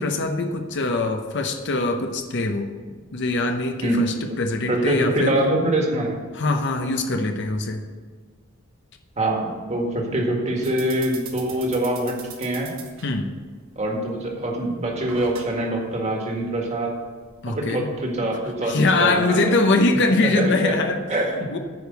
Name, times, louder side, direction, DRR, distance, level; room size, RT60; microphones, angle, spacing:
voice 1, 0.0-2.7 3.1-5.3 6.3-7.8 13.0-13.3 17.4-17.9 18.6-21.2 21.5-21.6, left 2 dB, 55° left, 5 dB, 0.8 m, -22 dB
voice 2, 4.7-6.2 9.2-12.7 13.8-16.9 17.5-19.6 20.2-20.7 21.1-21.6, right 1 dB, 35° right, 0 dB, 1.8 m, -24 dB
sound 1, 10.6-20.6, right 6 dB, 70° right, 1.5 m, -45 dB
9.3 x 5.2 x 8.0 m, 1.5 s
head